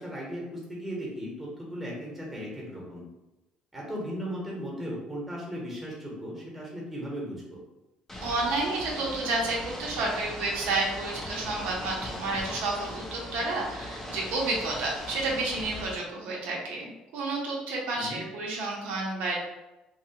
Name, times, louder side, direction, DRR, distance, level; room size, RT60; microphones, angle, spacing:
voice 1, 0.0-3.0 3.7-7.6 17.9-18.2, equal, 5° right, -4 dB, 1.0 m, -37 dB
Ocean / Boat Water vehicle, 8.1-16.0, left 1 dB, 10° left, 0.5 m, -39 dB
voice 2, 8.2-19.4, right 2 dB, 85° right, -3 dB, 0.8 m, -30 dB
2.8 x 2.3 x 2.8 m, 0.99 s
cardioid pair, 120°, 3 cm